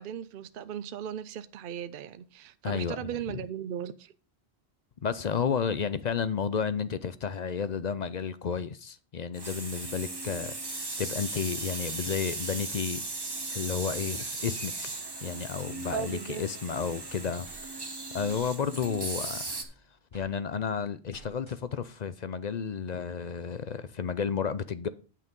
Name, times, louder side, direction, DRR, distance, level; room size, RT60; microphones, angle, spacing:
voice 1, 0.0-4.1 15.9-16.4, right 9 dB, 60° right, 0.7 m, -37 dB
voice 2, 2.6-3.1 5.0-10.6 11.0-13.0 13.5-14.7 15.2-17.5 18.1-19.5 20.1-24.9, left 6 dB, 50° left, 0.6 m, -32 dB
sound 1, 9.3-19.6, right 3 dB, 25° right, 1.0 m, -37 dB
sound 2, 16.8-17.7 18.3-18.5 18.8-20.3 21.1-21.9, right 2 dB, 25° left, 2.5 m, -54 dB
9.6 x 5.9 x 5.2 m
omnidirectional pair, 1.1 m